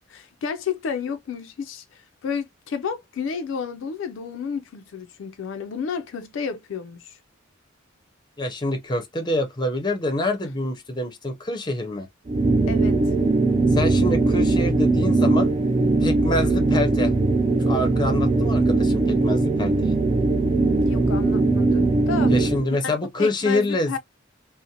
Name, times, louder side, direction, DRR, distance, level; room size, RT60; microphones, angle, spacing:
voice 1, 0.1-7.2 12.7-13.1 20.8-22.3 22.8-22.9 23.2-24.0, left 6 dB, 70° left, 0.4 m, -31 dB
voice 2, 8.4-12.1 13.7-15.5 16.0-17.1 17.6-20.0 22.3-24.0, left 2 dB, 20° left, 0.6 m, -26 dB
sound 1, 12.3-22.7, right 3 dB, 30° right, 0.3 m, -20 dB
2.5 x 2.0 x 2.7 m
head